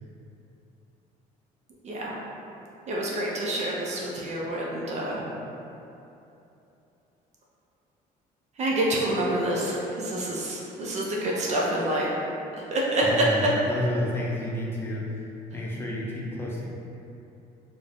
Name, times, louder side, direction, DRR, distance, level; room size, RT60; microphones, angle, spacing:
voice 1, 2.9-5.2 8.6-12.1 12.5-13.2, right 1 dB, 40° right, -4 dB, 0.4 m, -27 dB
voice 2, 13.0-15.2 15.5-16.6, left 1 dB, 15° left, -5 dB, 0.5 m, -30 dB
3.0 x 2.0 x 2.5 m, 2.8 s
cardioid pair, 110°, 17 cm